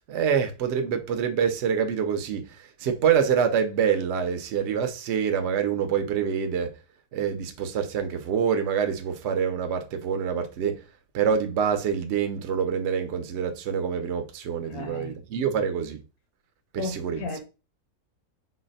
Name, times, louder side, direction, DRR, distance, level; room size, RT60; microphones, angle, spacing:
voice 1, 0.1-6.7 7.1-10.8 11.1-16.0 16.7-17.2, right 7 dB, 60° right, 0.8 m, -26 dB
voice 2, 14.7-15.1 16.8-17.4, left 4 dB, 75° left, 1.4 m, -34 dB
4.0 x 2.1 x 4.0 m
omnidirectional pair, 1.6 m